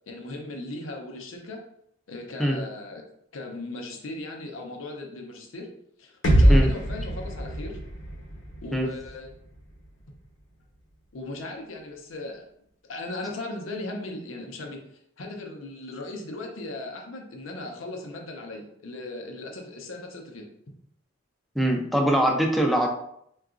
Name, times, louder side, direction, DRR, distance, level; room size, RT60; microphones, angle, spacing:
voice 1, 0.1-1.6 2.1-3.0 3.3-5.7 6.0-7.8 8.6-9.3 11.1-12.4 12.8-14.8 15.2-20.5, left 2 dB, 90° left, 2 dB, 0.6 m, -37 dB
sound 1, 6.2-10.2, right 1 dB, 70° left, 0.9 m, -24 dB
voice 2, 21.6-22.9, equal, ahead, 1 dB, 0.4 m, -22 dB
3.8 x 2.3 x 2.4 m, 0.72 s
head